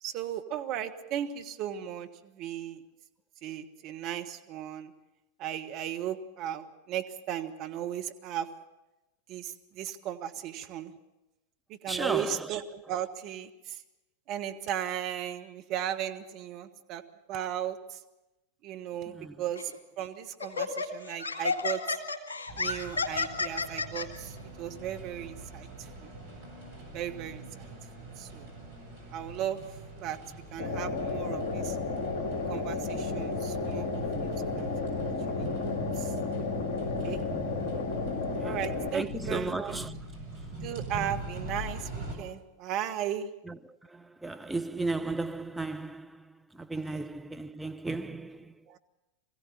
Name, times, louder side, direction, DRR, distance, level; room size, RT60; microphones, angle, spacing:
voice 1, 0.0-2.8 3.4-4.9 5.4-8.5 9.3-10.9 11.7-13.8 14.3-17.0 17.3-18.0 18.6-19.7 20.0-22.0 22.6-26.1 26.9-27.7 28.2-28.5 29.1-29.6 29.9-30.2 30.5-31.8 32.4-36.1 37.0-37.2 38.4-39.8 40.6-43.3 46.7-47.0 48.7-48.8, right 10 dB, 40° right, 1.4 m, -36 dB
voice 2, 11.9-12.5 19.1-19.4 37.0-37.2 38.4-38.6 38.9-39.9 43.5-43.6 43.9-46.2 46.5-48.5, right 2 dB, 5° right, 0.6 m, -35 dB
Laughter, 19.6-19.8 20.4-24.1, left 4 dB, 70° left, 2.2 m, -31 dB
sound 1, 22.5-42.1, right 1 dB, 65° right, 6.3 m, -43 dB
sound 2, 30.6-38.9, left 3 dB, 45° left, 2.4 m, -32 dB
22.0 x 16.0 x 7.4 m
figure-of-eight pair, 90°, 0 cm